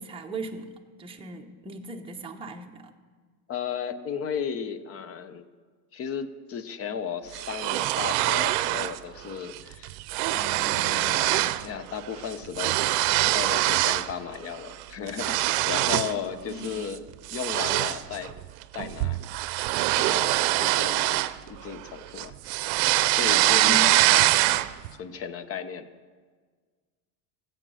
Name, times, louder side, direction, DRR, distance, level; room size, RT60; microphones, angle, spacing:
voice 1, 0.0-2.9 16.5-16.8 23.6-24.0, right 2 dB, 10° right, 1 dB, 0.9 m, -38 dB
voice 2, 3.5-5.5 5.9-9.9 10.3-12.8 13.1-17.1 17.3-18.4 18.7-19.3 19.9-21.2 21.5-22.3 23.1-24.5 25.0-25.9, left 7 dB, 30° left, 13 dB, 0.7 m, -35 dB
sound 1, 7.3-9.0 9.3-9.6 9.8-11.7 11.9-14.1 14.5-16.2 16.6-16.9 17.3-21.8 22.2-24.9, right 17 dB, 75° right, 0.7 m, -24 dB
15.0 x 8.0 x 6.3 m, 1.5 s
supercardioid pair, 135°, 47 cm